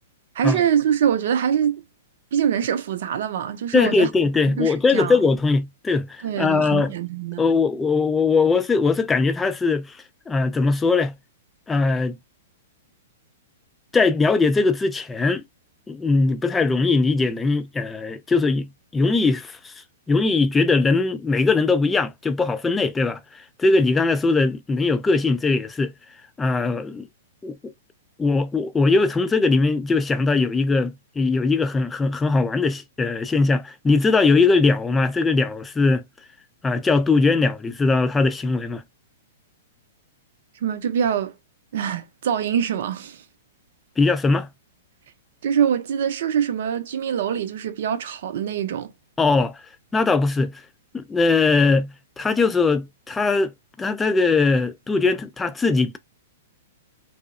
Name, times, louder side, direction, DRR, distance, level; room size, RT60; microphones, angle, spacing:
voice 1, 0.3-1.8 2.3-4.1 4.6-5.2 6.2-7.4 40.6-41.3 41.7-43.2 45.4-48.9, right 8 dB, 65° right, 0.5 m, -24 dB
voice 2, 3.7-6.9 7.4-10.0 10.3-11.1 11.7-12.2 13.9-15.4 15.9-19.7 20.1-25.9 26.4-27.1 27.4-27.7 28.2-36.0 36.6-38.8 44.0-44.5 49.2-49.6 49.9-50.6 50.9-53.5 53.8-56.0, left 3 dB, 10° left, 0.4 m, -20 dB
2.6 x 2.0 x 2.4 m
hypercardioid pair, 125°, 0 cm